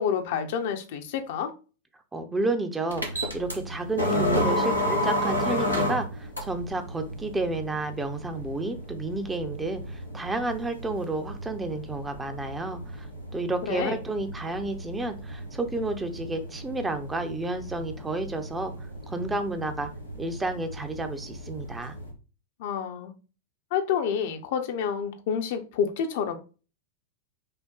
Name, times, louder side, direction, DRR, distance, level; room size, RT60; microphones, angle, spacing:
voice 1, 0.0-1.5 13.7-14.0 22.6-23.1 23.7-26.4, left 7 dB, 50° left, 0.6 m, -28 dB
voice 2, 2.1-13.1 13.3-18.7 19.1-19.9 20.2-21.9, right 2 dB, 15° right, 0.6 m, -31 dB
sound 1, 2.9-22.1, equal, 85° right, 1.2 m, -33 dB
5.5 x 2.1 x 3.9 m
figure-of-eight pair, 90°, 0 cm